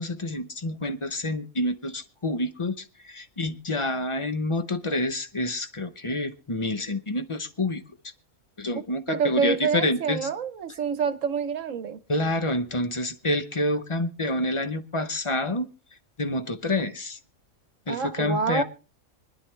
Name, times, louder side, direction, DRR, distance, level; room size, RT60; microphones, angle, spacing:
voice 1, 0.0-7.8 8.6-10.3 12.1-15.7 16.2-17.2 17.9-18.6, left 1 dB, 25° left, 0.8 m, -28 dB
voice 2, 9.1-12.0 17.9-18.6, right 6 dB, 65° right, 1.3 m, -27 dB
25.0 x 10.5 x 3.3 m
omnidirectional pair, 1.4 m